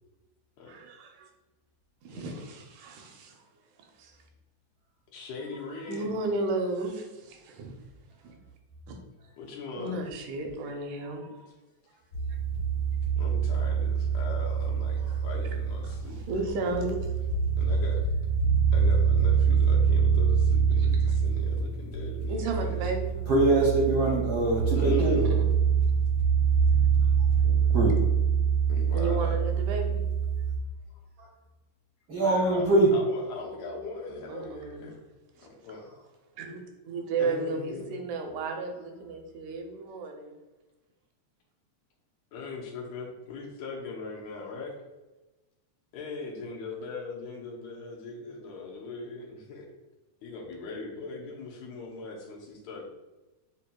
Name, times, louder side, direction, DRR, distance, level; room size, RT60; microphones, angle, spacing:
voice 1, 0.7-1.3 2.0-3.4 4.0-4.2 5.9-7.8 8.2-8.4 9.8-11.5 15.4-15.5 15.8-17.1 20.8-21.1 22.3-23.1 25.0-25.4 27.4-27.6 28.9-30.0 34.3-34.9 35.4-35.5 36.4-40.3, right 3 dB, 90° right, 3 dB, 2.1 m, -34 dB
voice 2, 2.1-2.5 5.1-6.1 9.4-10.0 13.2-16.4 17.6-18.0 18.7-22.8 24.7-25.3 28.7-29.4 32.2-34.9 35.4-35.9 37.2-37.8 42.3-44.8 45.9-49.6 50.2-52.9, left 3 dB, 80° left, -2 dB, 2.0 m, -40 dB
sound 1, 12.1-30.6, right 6 dB, 50° left, 1.6 m, -25 dB
voice 3, 23.3-25.2 27.7-27.9 32.1-32.9, right 2 dB, 70° right, -3 dB, 1.3 m, -23 dB
7.9 x 2.8 x 2.3 m, 1.1 s
omnidirectional pair, 3.3 m